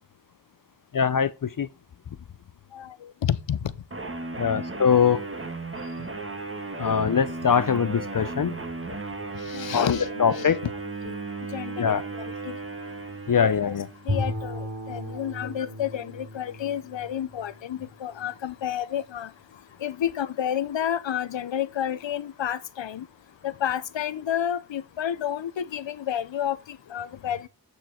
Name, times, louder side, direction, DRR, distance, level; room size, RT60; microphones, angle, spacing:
voice 1, 0.9-1.7 4.4-5.2 6.8-8.5 9.7-10.6 11.8-12.0 13.3-13.9 15.4-15.5, left 7 dB, 50° left, 0.6 m, -22 dB
voice 2, 3.2-3.6 9.5-10.5 11.0-11.2 11.5-12.6 13.4-13.8 14.1-19.3 19.8-23.0 23.4-27.5, left 10 dB, 85° left, 0.7 m, -30 dB
sound 1, 3.9-14.1, right 3 dB, 30° right, 1.6 m, -35 dB
Bowed string instrument, 14.1-18.3, left 1 dB, 80° right, 3.3 m, -35 dB
8.2 x 7.2 x 4.3 m
wide cardioid pair, 60°, 43 cm